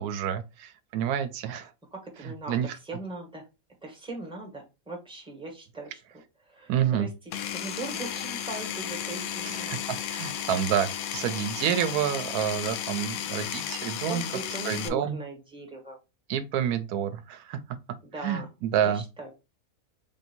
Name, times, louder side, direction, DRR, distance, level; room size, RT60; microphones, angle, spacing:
voice 1, 0.0-1.7 2.5-2.8 6.7-7.1 9.4-14.2 14.6-15.2 16.3-17.6 18.2-19.0, right 9 dB, 90° right, 1.1 m, -28 dB
voice 2, 1.9-3.4 3.8-6.0 6.4-7.1 7.5-9.8 14.0-16.0 18.0-18.5 18.7-19.3, right 2 dB, 5° right, 1.2 m, -39 dB
Power tool, 7.3-14.9, left 10 dB, 75° left, 1.0 m, -34 dB
3.4 x 2.7 x 4.3 m
omnidirectional pair, 1.5 m